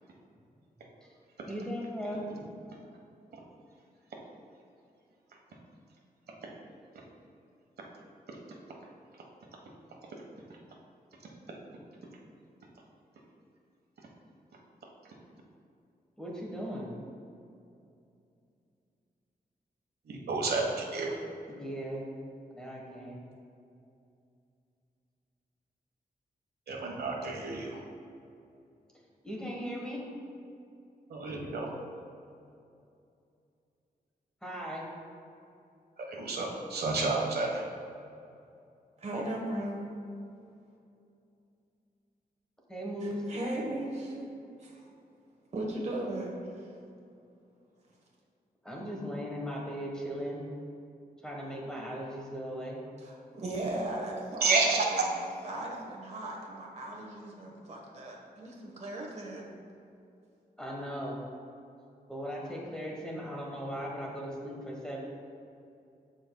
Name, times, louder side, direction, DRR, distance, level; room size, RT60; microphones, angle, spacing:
voice 1, 1.5-2.3 16.2-16.9 21.5-22.0 22.5-23.2 29.2-30.0 34.4-34.8 42.7-43.2 48.6-50.4 51.2-52.8 60.6-61.2 62.1-65.0, equal, 5° left, -2 dB, 1.3 m, -38 dB
voice 2, 20.0-21.2 26.7-27.8 31.1-31.7 36.0-37.6 54.4-55.0, right 3 dB, 85° right, 0 dB, 1.3 m, -30 dB
voice 3, 39.0-39.8 43.0-44.3 44.6-44.8 45.5-46.7 53.0-54.6 55.4-59.5, right 1 dB, 45° right, -1 dB, 1.2 m, -37 dB
14.0 x 5.1 x 2.3 m, 2.6 s
wide cardioid pair, 165°, 16 cm